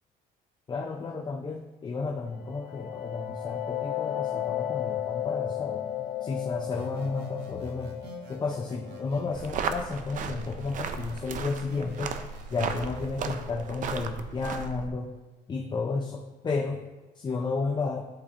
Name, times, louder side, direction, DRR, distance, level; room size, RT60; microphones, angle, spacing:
voice 1, 0.7-8.0 8.3-15.1 15.5-16.8 17.1-18.1, left 4 dB, 25° left, 2 dB, 0.5 m, -32 dB
sound 1, 2.3-11.8, left 12 dB, 75° left, 0.5 m, -35 dB
sound 2, 6.7-9.8 10.2-13.2, right 1 dB, 85° right, 0.9 m, -47 dB
sound 3, 9.3-14.9, right 6 dB, 50° right, 0.5 m, -35 dB
10.5 x 4.2 x 2.5 m, 1.2 s
cardioid pair, 110°, 17 cm